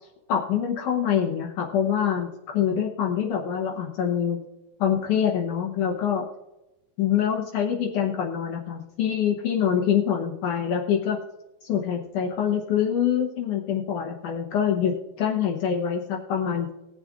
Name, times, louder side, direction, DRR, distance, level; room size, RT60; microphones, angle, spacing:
voice 1, 0.3-4.4 4.8-6.3 7.0-11.2 11.6-16.7, left 8 dB, 70° left, 1 dB, 2.0 m, -25 dB
20.5 x 7.2 x 2.4 m, 1.0 s
omnidirectional pair, 4.5 m